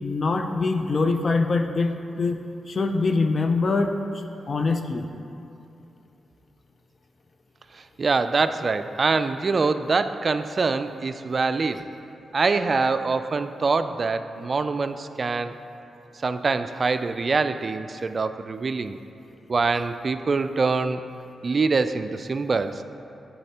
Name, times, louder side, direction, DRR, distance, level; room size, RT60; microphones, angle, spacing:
voice 1, 0.0-2.4 2.7-4.0 4.5-5.0, left 3 dB, 50° left, 6 dB, 0.5 m, -23 dB
voice 2, 7.7-11.8 12.3-15.6 16.2-19.0 19.5-21.0 21.4-22.8, right 4 dB, 50° right, 11 dB, 0.3 m, -24 dB
10.5 x 4.1 x 2.9 m, 2.7 s
cardioid pair, 55°, 0 cm